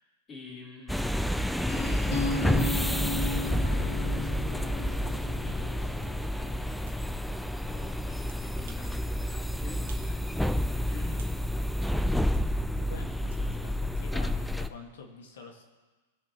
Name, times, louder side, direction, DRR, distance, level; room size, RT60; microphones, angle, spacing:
voice 1, 0.0-11.2 11.5-12.6, left 2 dB, 25° left, -8 dB, 3.3 m, -50 dB
sound 1, 0.9-14.7, left 1 dB, ahead, 0.4 m, -29 dB
sound 2, 1.7-7.4, left 2 dB, 50° left, 1.9 m, -35 dB
sound 3, 5.2-5.3 6.0-6.2 6.9-7.0 8.3-8.9 9.3-9.4 9.9-10.1 10.5-11.4 12.3-12.5 13.3-13.4, right 7 dB, 70° right, 1.4 m, -54 dB
voice 2, 12.8-15.6, left 4 dB, 70° left, 3 dB, 1.6 m, -47 dB
18.5 x 6.5 x 2.9 m, 1.3 s
hypercardioid pair, 105°, 0 cm